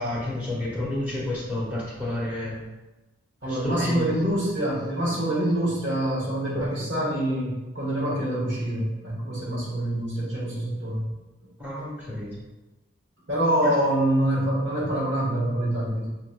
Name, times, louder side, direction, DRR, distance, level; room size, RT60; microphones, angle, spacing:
voice 1, 0.0-2.6 3.5-4.0 11.6-12.3 13.6-13.7, left 1 dB, 10° right, -8 dB, 1.2 m, -30 dB
voice 2, 3.4-11.1 13.3-16.1, right 1 dB, 60° right, -6 dB, 1.3 m, -25 dB
5.6 x 2.8 x 2.2 m, 1.1 s
head